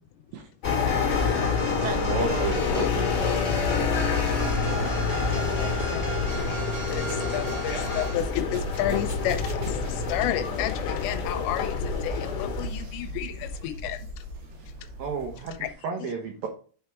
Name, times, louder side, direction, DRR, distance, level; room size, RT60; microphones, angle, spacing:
sound 1, 0.6-12.7, left 6 dB, 65° left, 2.8 m, -28 dB
sound 2, 0.6-8.2, right 2 dB, 5° right, 2.5 m, -36 dB
sound 3, 0.8-15.7, equal, 55° right, 2.4 m, -35 dB
voice 1, 1.0-1.4 1.6-2.8 4.4-5.2 14.5-15.0, right 4 dB, 70° right, 4 dB, 2.9 m, -40 dB
voice 2, 2.1-3.4 15.0-15.5 15.8-16.5, right 5 dB, 90° right, 2 dB, 2.0 m, -32 dB
voice 3, 5.2-6.0 6.5-6.6 6.9-11.7 12.0-14.2 15.6-15.7 16.0-16.1, left 13 dB, 80° left, 10 dB, 3.2 m, -32 dB
9.1 x 4.8 x 4.5 m, 0.41 s
omnidirectional pair, 5.8 m